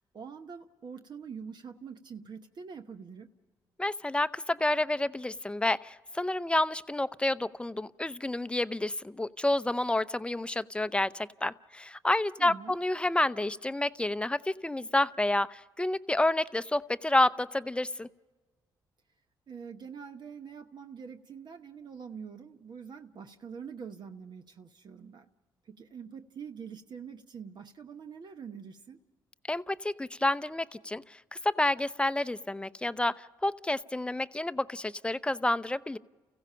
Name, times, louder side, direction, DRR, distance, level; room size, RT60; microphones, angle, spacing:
voice 1, 0.0-3.3 12.4-12.8 19.5-25.3 25.7-29.0, right 6 dB, 55° right, 7 dB, 1.1 m, -45 dB
voice 2, 3.8-18.1 29.5-31.0 31.4-36.0, left 1 dB, 10° left, 14 dB, 0.7 m, -29 dB
29.5 x 16.0 x 5.7 m, 1.2 s
supercardioid pair, 60°, 9 cm